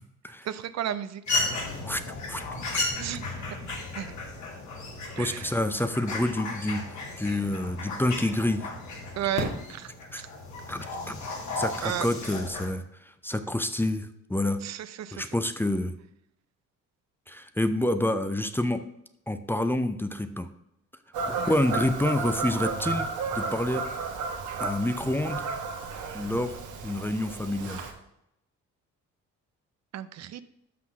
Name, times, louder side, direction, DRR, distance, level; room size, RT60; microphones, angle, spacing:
voice 1, 0.4-1.4 3.0-3.3 3.9-4.1 5.2-5.5 9.2-10.3 11.8-12.1 14.6-15.3 21.4-21.5 29.9-30.4, right 11 dB, 60° right, 12 dB, 0.5 m, -34 dB
sound 1, 1.3-12.7, left 2 dB, 70° left, 2.5 m, -34 dB
voice 2, 5.2-8.7 10.1-10.2 10.7-11.2 11.6-14.6 15.1-15.9 17.3-18.8 19.3-20.5 21.3-23.8 24.6-25.4 26.1-26.5 26.8-27.8, left 1 dB, 5° left, 9 dB, 0.6 m, -28 dB
Fowl / Bird vocalization bird call bird song, 21.1-27.9, right 4 dB, 80° right, 1.3 m, -33 dB
6.0 x 6.0 x 6.0 m, 0.80 s
cardioid pair, 90°, 30 cm